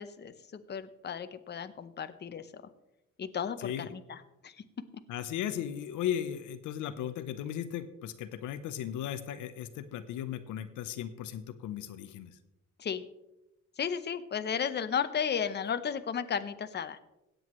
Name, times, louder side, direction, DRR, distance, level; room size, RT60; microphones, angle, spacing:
voice 1, 0.0-2.6 3.2-4.6 12.8-13.0 13.8-17.0, left 7 dB, 35° left, 11 dB, 0.7 m, -34 dB
voice 2, 5.1-12.3, left 10 dB, 90° left, 11 dB, 0.7 m, -36 dB
17.0 x 7.9 x 3.1 m, 0.93 s
cardioid pair, 90°, 30 cm